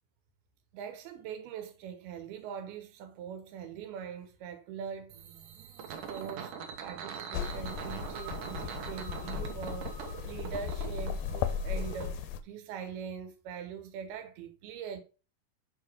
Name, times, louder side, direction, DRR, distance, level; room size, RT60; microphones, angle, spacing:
voice 1, 0.7-5.2 5.8-6.5 6.8-9.9 10.2-15.0, right 7 dB, 85° right, 3.0 m, -42 dB
sound 1, 5.1-12.1, right 7 dB, 65° right, 2.3 m, -42 dB
sound 2, 7.3-12.4, left 8 dB, 85° left, 2.5 m, -36 dB
7.7 x 5.0 x 4.8 m
omnidirectional pair, 4.3 m